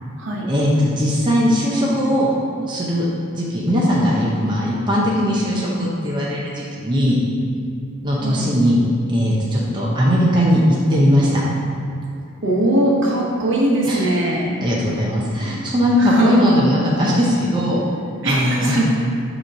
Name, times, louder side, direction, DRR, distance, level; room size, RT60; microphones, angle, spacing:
voice 1, 0.4-2.3 2.7-3.1 3.4-7.2 8.0-8.8 9.1-10.6 10.9-11.4 13.9-14.2 14.6-17.8 18.2-18.8, equal, 20° right, -5 dB, 0.7 m, -19 dB
voice 2, 12.4-14.6 16.0-16.5 18.2-18.8, right 1 dB, 60° right, -3 dB, 1.1 m, -20 dB
6.5 x 3.1 x 5.5 m, 2.4 s
head